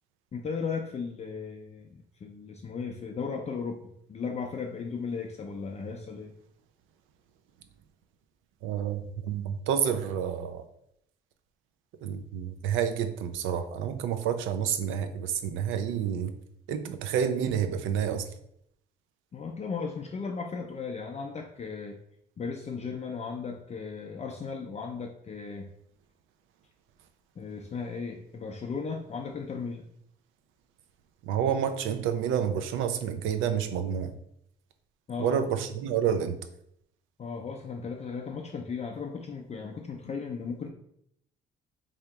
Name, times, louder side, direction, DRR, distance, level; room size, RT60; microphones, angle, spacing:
voice 1, 0.3-6.3 19.3-21.9 22.4-25.7 27.4-29.9 35.1-35.4 37.2-40.7, left 5 dB, 35° left, 1 dB, 0.4 m, -36 dB
voice 2, 8.6-10.6 12.0-16.3 16.7-18.3 31.2-34.1 35.2-36.4, right 8 dB, 90° right, 9 dB, 0.4 m, -29 dB
3.4 x 2.8 x 3.5 m, 0.73 s
cardioid pair, 90°, 20 cm